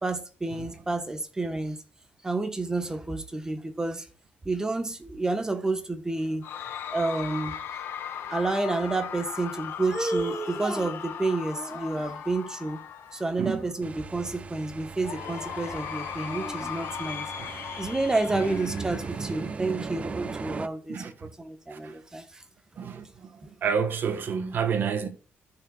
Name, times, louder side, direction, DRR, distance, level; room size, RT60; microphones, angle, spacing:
voice 1, 0.0-1.8 2.2-4.1 4.4-6.5 6.9-7.5 8.3-12.8 13.1-22.4, right 2 dB, 15° right, 1.3 m, -30 dB
Cheering / Crowd, 6.4-13.7 15.0-19.7, left 8 dB, 80° left, 1.6 m, -38 dB
sound 1, 13.8-20.7, right 5 dB, 30° right, 0.6 m, -37 dB
voice 2, 23.6-25.1, right 6 dB, 55° right, 1.4 m, -28 dB
14.0 x 6.5 x 2.5 m
cardioid pair, 115°, 4 cm